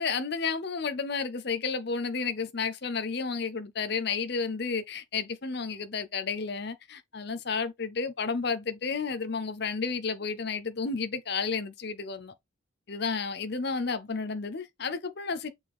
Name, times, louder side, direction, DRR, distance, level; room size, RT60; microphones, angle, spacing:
voice 1, 0.0-12.3 12.9-15.5, left 5 dB, 55° left, 0.7 m, -32 dB
6.6 x 4.4 x 3.6 m
head